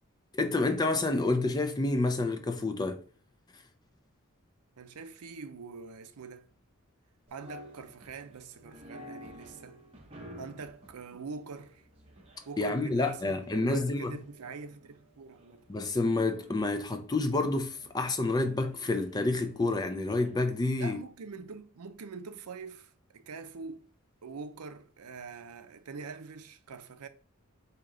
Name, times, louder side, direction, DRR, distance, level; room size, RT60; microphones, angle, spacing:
voice 1, 0.3-3.0 12.6-14.2 15.7-21.0, left 2 dB, 20° left, 0.4 m, -29 dB
voice 2, 4.8-6.5 7.3-9.8 10.4-11.8 12.5-15.6 20.8-23.9 24.2-27.1, right 4 dB, 80° right, 0.5 m, -44 dB
sound 1, 7.3-20.6, equal, 25° right, 0.7 m, -53 dB
4.7 x 2.9 x 3.8 m
head